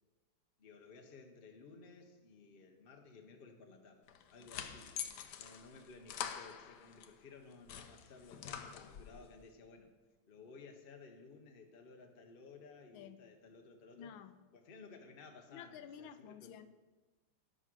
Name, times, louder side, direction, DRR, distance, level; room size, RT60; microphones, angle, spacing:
voice 1, 0.6-4.9 5.4-9.9 10.3-14.1 14.5-16.6, left 4 dB, 50° left, 0.7 m, -56 dB
sound 1, 4.1-7.1 7.5-9.2, left 8 dB, 65° left, 1.1 m, -46 dB
voice 2, 12.9-13.2 14.0-14.4 15.5-16.7, left 8 dB, 80° left, 1.4 m, -51 dB
11.0 x 6.3 x 6.1 m
omnidirectional pair, 2.2 m